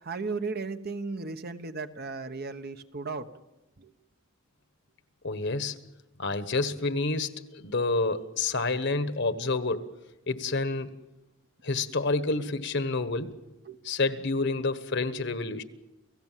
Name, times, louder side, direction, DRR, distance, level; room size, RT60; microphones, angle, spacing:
voice 1, 0.0-3.3 3.8-3.9 13.7-13.8, right 4 dB, 45° right, 8 dB, 1.1 m, -35 dB
voice 2, 5.2-5.8 6.2-9.8 10.3-10.9 11.6-13.3 13.8-15.6, left 3 dB, 55° left, 11 dB, 1.3 m, -28 dB
29.5 x 16.5 x 7.5 m, 1.0 s
head